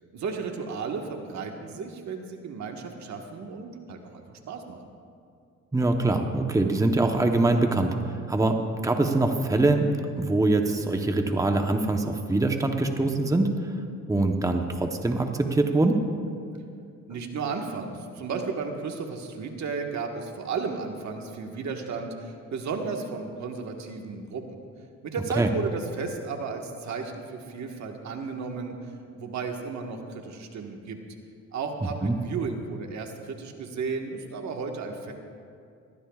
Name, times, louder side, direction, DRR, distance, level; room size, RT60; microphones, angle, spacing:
voice 1, 0.1-4.8 17.1-24.4 25.0-28.7 29.1-31.0 31.5-35.1, right 4 dB, 65° right, 3 dB, 1.5 m, -34 dB
voice 2, 5.7-7.9 8.3-8.6 8.8-9.9 10.2-13.6 14.1-16.0 25.4-25.5 32.0-32.2, right 2 dB, 10° right, 4 dB, 0.9 m, -23 dB
21.5 x 15.5 x 2.4 m, 2.3 s
cardioid pair, 90°, 30 cm